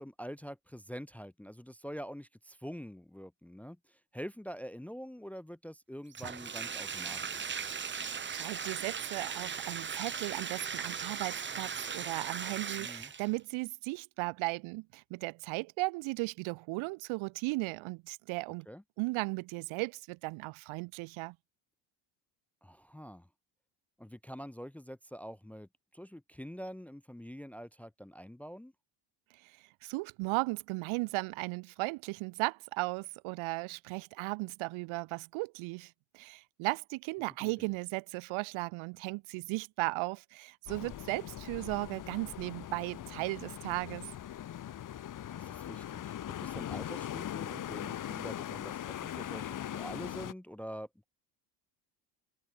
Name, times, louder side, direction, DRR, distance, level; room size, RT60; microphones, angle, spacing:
voice 1, 0.0-7.6 12.8-13.1 18.7-18.8 22.6-23.3 24.0-28.7 37.4-37.7 45.3-51.1, equal, 5° left, 0.9 m, -45 dB
Bathtub (filling or washing), 6.1-13.4, right 6 dB, 25° right, 2.1 m, -38 dB
voice 2, 8.0-18.7 19.0-21.4 29.4-44.1, right 25 dB, 75° right, 0.7 m, -36 dB
sound 1, 40.7-50.3, left 11 dB, 40° left, 2.3 m, -41 dB
open air
cardioid pair, 165°, 48 cm